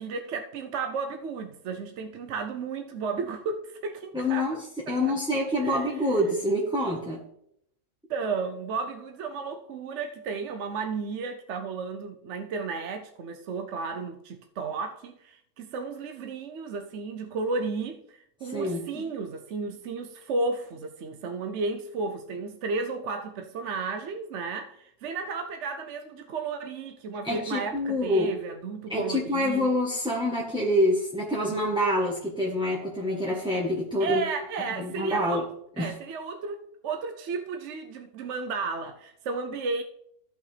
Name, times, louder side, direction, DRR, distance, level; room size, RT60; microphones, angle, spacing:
voice 1, 0.0-4.6 4.9-5.1 5.6-5.9 8.1-29.7 34.0-35.4 35.8-39.8, right 4 dB, 60° right, 0.9 m, -33 dB
voice 2, 4.1-4.6 4.9-7.2 18.4-19.0 27.2-28.3 28.9-34.2 34.8-35.4 35.8-35.9, left 1 dB, 5° right, 1.1 m, -26 dB
14.5 x 5.7 x 3.3 m
omnidirectional pair, 1.6 m